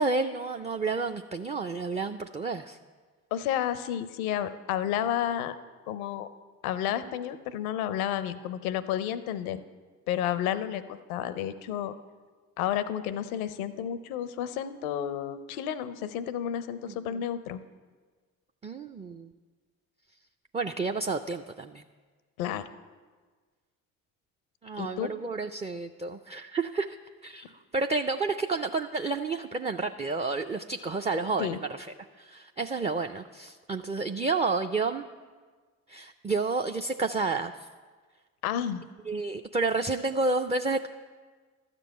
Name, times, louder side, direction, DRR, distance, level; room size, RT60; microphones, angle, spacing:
voice 1, 0.0-2.8 16.9-17.2 18.6-19.3 20.5-21.8 24.6-27.0 27.2-27.5 27.7-31.9 32.2-35.0 35.9-37.5 39.1-40.9, right 3 dB, 15° right, 5 dB, 0.4 m, -30 dB
voice 2, 3.3-5.6 5.9-6.3 6.6-9.6 10.1-11.9 12.6-17.6 22.4-22.6 24.8-25.1 31.4-31.6 38.4-38.8, left 10 dB, 85° left, 14 dB, 0.6 m, -31 dB
12.5 x 5.2 x 8.5 m, 1.4 s
hypercardioid pair, 50°, 41 cm